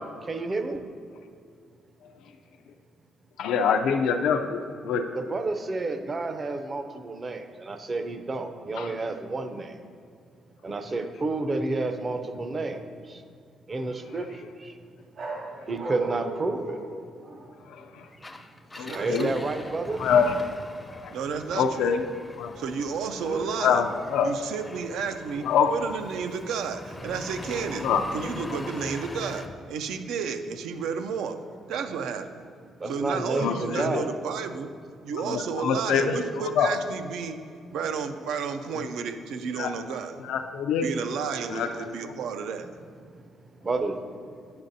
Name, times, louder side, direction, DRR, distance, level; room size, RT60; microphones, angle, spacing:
voice 1, 0.3-0.8 5.2-9.8 10.6-13.2 13.7-14.8 15.7-16.8 18.9-20.0 32.8-34.1 43.2-44.0, right 3 dB, 35° right, 8 dB, 0.5 m, -30 dB
voice 2, 3.4-5.1 8.8-8.9 17.7-18.1 18.8-19.3 20.0-20.3 21.0-21.1 21.6-22.0 22.4-22.5 23.6-24.3 25.4-25.7 27.8-28.0 33.4-34.0 35.2-36.7 39.5-39.7 40.2-40.9 41.5-41.9, left 7 dB, 85° left, 5 dB, 0.3 m, -25 dB
sound 1, 15.1-17.7 18.8-19.5 19.8-20.3 23.3-23.9 27.5-28.2, right 2 dB, 60° right, 1.5 m, -38 dB
Engine, 18.1-29.6, left 2 dB, 20° left, 0.4 m, -42 dB
voice 3, 18.7-19.4 21.1-21.9 22.6-23.8 24.2-27.9 28.1-31.4 31.7-32.3 32.9-34.7 35.0-37.4 37.7-40.2 40.8-42.7, right 6 dB, 80° right, 8 dB, 0.4 m, -32 dB
8.6 x 6.5 x 2.7 m, 2.3 s
cardioid pair, 90°, 0 cm